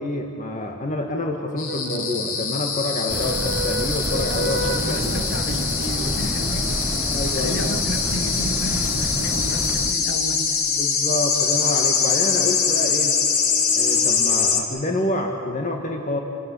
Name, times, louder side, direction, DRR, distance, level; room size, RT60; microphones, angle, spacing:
voice 1, 0.0-5.2 7.1-7.7 10.7-13.1 13.7-16.2, left 1 dB, 35° left, 2 dB, 1.8 m, -27 dB
sound 1, 1.6-14.6, left 6 dB, 80° left, 2.5 m, -23 dB
sound 2, 1.7-10.7 12.2-14.7, right 3 dB, 55° right, 1.7 m, -36 dB
sound 3, 3.1-9.9, right 1 dB, 10° right, 1.1 m, -29 dB
voice 2, 4.4-10.6, left 1 dB, 60° left, 4 dB, 2.6 m, -32 dB
28.0 x 18.5 x 8.5 m, 2.8 s
head